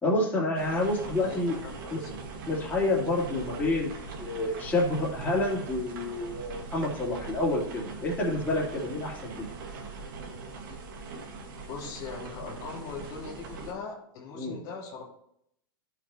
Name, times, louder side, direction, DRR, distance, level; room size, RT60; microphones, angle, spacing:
voice 1, 0.0-1.6 1.9-2.0 2.4-9.5 14.3-14.6, left 2 dB, 15° left, -5 dB, 2.9 m, -28 dB
sound 1, 0.5-13.7, right 4 dB, 60° right, 1.9 m, -41 dB
voice 2, 1.0-2.1 9.8-10.1 11.7-15.0, left 5 dB, 55° left, -2 dB, 2.9 m, -41 dB
12.5 x 6.0 x 2.9 m, 0.73 s
hypercardioid pair, 115°, 12 cm